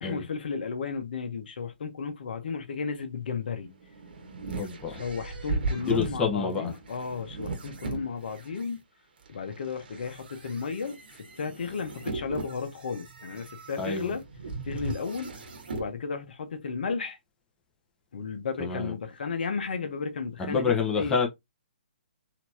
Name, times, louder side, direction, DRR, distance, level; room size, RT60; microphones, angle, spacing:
voice 1, 0.0-3.7 4.9-8.8 9.3-11.0 11.4-14.2 14.6-15.3 15.7-17.2 18.1-21.3, left 5 dB, 60° left, 1.0 m, -34 dB
sound 1, 3.6-8.7 9.3-15.9, right 3 dB, 65° right, 1.2 m, -37 dB
voice 2, 4.6-4.9 5.9-6.7 13.8-14.1 18.6-18.9 20.4-21.3, left 5 dB, 10° left, 0.9 m, -27 dB
4.3 x 2.8 x 2.8 m
hypercardioid pair, 135°, 6 cm